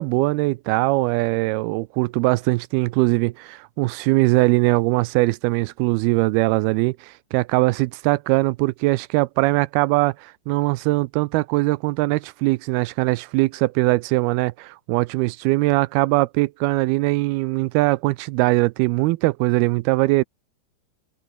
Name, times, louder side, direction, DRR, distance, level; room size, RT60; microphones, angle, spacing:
voice 1, 0.0-20.2, right 21 dB, 80° right, 2.3 m, -21 dB
omnidirectional pair, 4.8 m